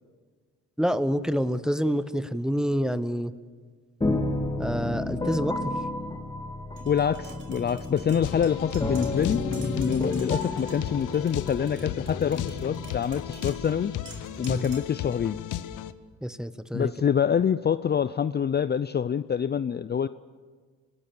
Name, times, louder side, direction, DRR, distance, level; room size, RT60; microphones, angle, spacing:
voice 1, 0.8-3.3 4.6-5.6 14.5-14.7 16.2-16.9, equal, ahead, 13 dB, 1.1 m, -27 dB
sound 1, 4.0-13.6, left 2 dB, 15° left, 2.7 m, -32 dB
Tap, 6.8-15.0, right 3 dB, 40° right, 4.9 m, -47 dB
voice 2, 6.9-9.4 9.7-13.9 14.4-15.4 16.7-20.1, left 8 dB, 35° left, 14 dB, 0.6 m, -26 dB
sound 2, 8.2-15.9, left 11 dB, 80° left, 1.0 m, -35 dB
26.0 x 19.0 x 7.1 m, 1.5 s
cardioid pair, 90°, 30 cm